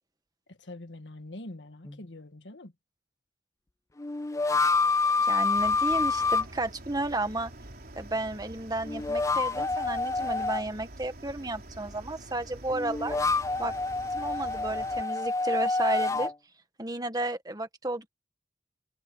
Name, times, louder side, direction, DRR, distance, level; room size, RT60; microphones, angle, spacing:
voice 1, 0.5-2.7, left 1 dB, 90° left, 1.7 m, -44 dB
sound 1, 1.9-2.0 4.0-6.4 8.8-10.6 12.7-16.3, left 3 dB, 15° left, 0.4 m, -27 dB
voice 2, 5.2-7.5 7.9-13.2 13.6-13.7 14.1-16.3 16.8-18.1, right 2 dB, 20° right, 1.6 m, -33 dB
sound 2, 5.5-15.0, right 1 dB, 55° right, 3.6 m, -46 dB
head